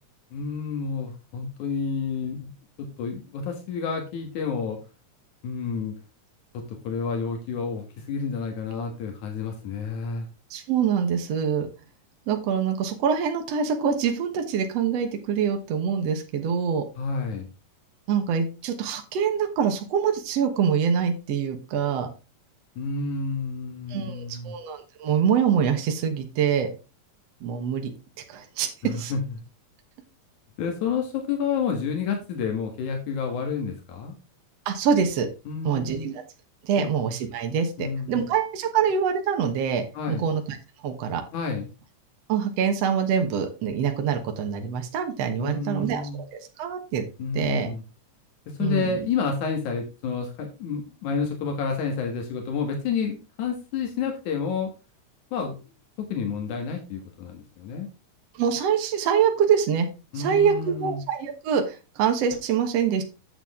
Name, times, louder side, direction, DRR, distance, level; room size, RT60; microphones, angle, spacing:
voice 1, 0.3-2.5 2.8-4.8 5.4-5.9 6.5-10.3 17.0-17.5 22.8-24.5 28.8-29.2 30.6-34.1 35.5-36.1 36.8-36.9 37.8-38.2 39.9-40.3 41.3-41.7 45.4-46.2 47.2-47.8 48.5-54.7 55.3-55.6 56.0-57.9 60.1-61.0, left 5 dB, 85° left, 3 dB, 3.1 m, -30 dB
voice 2, 10.5-11.7 12.3-16.8 18.1-22.1 23.9-26.7 27.4-27.9 28.3-29.1 34.7-35.3 35.6-36.2 36.6-40.6 40.8-41.2 42.3-47.0 47.3-47.7 48.6-49.0 58.4-59.9 60.2-63.0, right 7 dB, 65° right, 4 dB, 2.3 m, -25 dB
8.9 x 7.7 x 3.6 m, 0.30 s
omnidirectional pair, 3.3 m